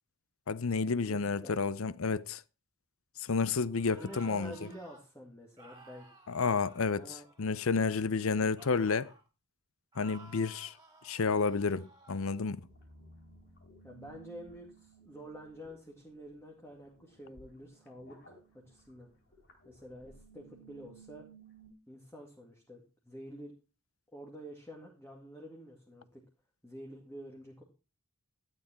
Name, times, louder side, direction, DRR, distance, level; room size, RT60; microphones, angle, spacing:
voice 1, 0.5-2.4 3.2-4.5 6.3-7.1 7.4-9.1 10.0-10.7 11.0-12.6, left 4 dB, 70° left, 0.6 m, -30 dB
voice 2, 1.0-1.7 4.0-6.1 7.0-7.3 13.8-19.1 19.6-21.3 21.9-23.5 24.1-26.2 26.6-27.6, equal, 10° left, 2.1 m, -49 dB
sound 1, 3.7-5.0 5.6-7.8 8.5-9.3 9.9-12.4, right 2 dB, 15° right, 3.4 m, -56 dB
sound 2, 12.6-21.7, right 3 dB, 50° left, 4.1 m, -58 dB
12.5 x 9.1 x 4.4 m
head